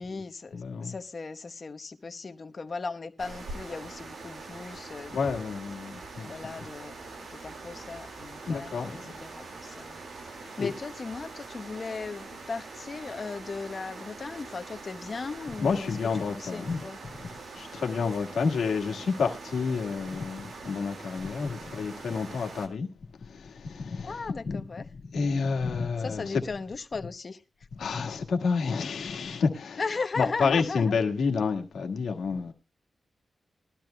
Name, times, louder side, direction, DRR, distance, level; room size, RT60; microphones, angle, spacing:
voice 1, 0.0-5.6 6.3-16.0 16.3-17.0 24.0-24.9 26.0-27.4 29.8-30.9, left 4 dB, 50° left, 1.0 m, -37 dB
voice 2, 0.5-0.9 5.1-6.3 8.5-9.2 10.4-10.7 15.6-17.1 17.6-22.9 23.2-24.6 24.9-26.4 27.8-29.8 30.2-32.5, left 5 dB, 85° left, 1.6 m, -29 dB
sound 1, 3.2-22.7, right 3 dB, 75° right, 2.0 m, -43 dB
20.5 x 12.0 x 2.2 m
cardioid pair, 80°, 0 cm